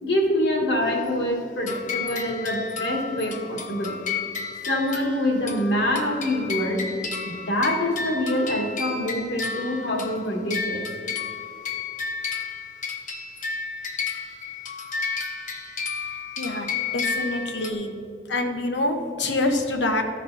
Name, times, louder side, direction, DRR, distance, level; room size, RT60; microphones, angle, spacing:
voice 1, 0.0-4.0 4.7-6.8 7.2-10.8, left 1 dB, 70° left, 1 dB, 1.7 m, -25 dB
sound 1, 1.7-17.7, left 5 dB, 45° left, 0.8 m, -32 dB
voice 2, 16.4-16.7 16.9-17.9 18.3-20.0, left 2 dB, 90° left, 5 dB, 1.0 m, -25 dB
13.5 x 5.3 x 4.1 m, 2.5 s
head